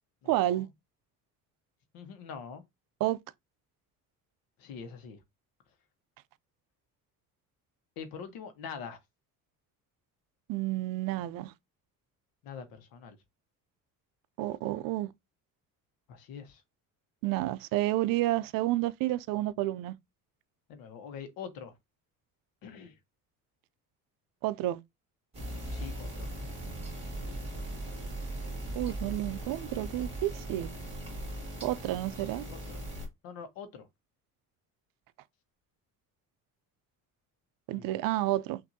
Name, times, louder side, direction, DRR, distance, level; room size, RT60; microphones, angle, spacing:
voice 1, 0.3-0.7 3.0-3.2 10.5-11.5 14.4-15.1 17.2-19.9 24.4-24.8 28.7-30.7 31.6-32.4 37.7-38.6, right 15 dB, 75° right, 0.5 m, -30 dB
voice 2, 1.9-2.6 4.6-5.2 8.0-9.0 12.4-13.2 16.1-16.6 20.7-21.7 22.6-22.9 25.7-26.3 32.5-32.8 33.2-33.9 37.8-37.9, left 6 dB, 85° left, 1.1 m, -44 dB
sound 1, 25.3-33.1, right 1 dB, 15° right, 1.9 m, -39 dB
5.9 x 2.6 x 2.7 m
cardioid pair, 160°, 34 cm